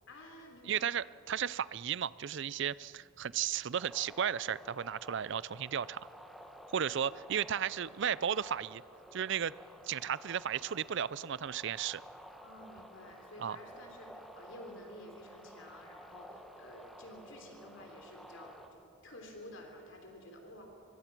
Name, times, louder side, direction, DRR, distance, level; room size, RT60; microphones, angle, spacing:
voice 1, 0.1-0.9 2.9-3.0 7.1-7.2 12.4-20.6, left 1 dB, 60° left, 3 dB, 3.4 m, -52 dB
voice 2, 0.7-6.0 6.7-8.8 9.1-9.5 9.8-12.0 13.4-13.6, right 8 dB, 60° right, 19 dB, 0.4 m, -34 dB
sound 1, 3.7-18.7, equal, ahead, 1.6 m, -53 dB
25.5 x 23.0 x 6.1 m, 2.6 s
head